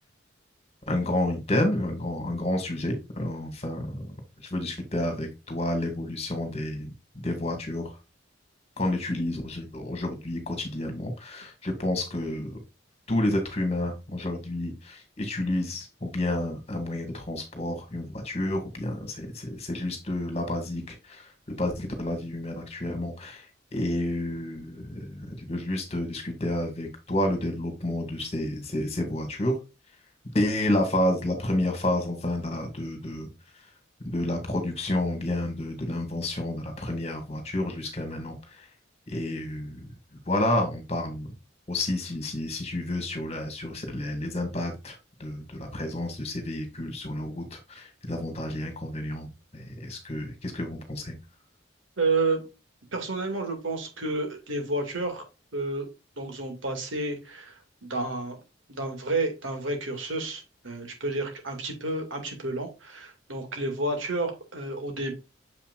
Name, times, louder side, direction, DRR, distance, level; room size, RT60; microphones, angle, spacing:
voice 1, 0.9-4.2 4.4-8.0 8.8-12.6 13.1-23.5 23.7-29.6 30.3-33.3 34.0-38.7 39.1-39.9 40.3-41.3 41.7-51.2, left 1 dB, 35° left, 5 dB, 2.1 m, -30 dB
voice 2, 52.0-52.4 52.9-55.2 55.5-55.9 56.2-58.4 58.7-65.1, right 2 dB, 90° right, 4 dB, 2.3 m, -30 dB
7.1 x 5.7 x 2.5 m, 0.27 s
head